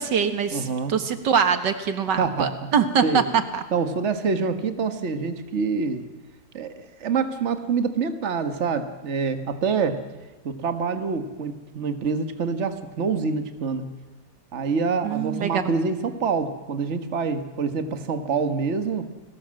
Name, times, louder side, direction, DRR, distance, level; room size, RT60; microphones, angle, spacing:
voice 1, 0.0-3.6 15.0-15.6, right 6 dB, 80° right, 9 dB, 2.1 m, -23 dB
voice 2, 0.5-0.9 2.2-2.7 3.0-3.2 3.7-6.0 6.5-10.0 10.4-13.9 14.5-19.1, right 5 dB, 40° right, 8 dB, 1.7 m, -26 dB
30.0 x 19.5 x 7.7 m, 1.2 s
omnidirectional pair, 1.9 m